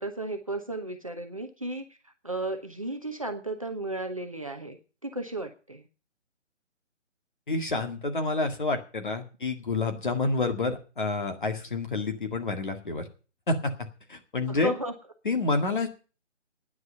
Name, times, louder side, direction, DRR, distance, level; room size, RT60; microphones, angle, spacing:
voice 1, 0.0-4.8 5.0-5.9 14.5-14.9, right 1 dB, 30° right, 4 dB, 0.9 m, -34 dB
voice 2, 7.5-13.1 13.5-13.7 14.1-14.7 15.3-15.9, left 3 dB, 40° left, 5 dB, 2.0 m, -28 dB
9.6 x 8.4 x 8.7 m, 0.36 s
hypercardioid pair, 180°, 37 cm